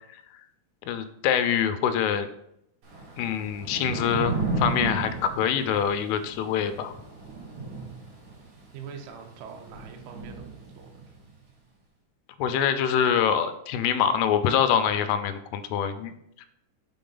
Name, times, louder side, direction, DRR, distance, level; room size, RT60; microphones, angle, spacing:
voice 1, 0.9-2.3 3.2-6.9 12.4-16.1 16.4-16.5, left 8 dB, 85° left, 10 dB, 3.1 m, -25 dB
Thunder / Rain, 2.8-11.2, right 3 dB, 60° right, 2.3 m, -34 dB
voice 2, 8.7-11.1, right 6 dB, 85° right, 2 dB, 3.2 m, -43 dB
6.9 x 4.7 x 3.9 m, 0.78 s
omnidirectional pair, 5.6 m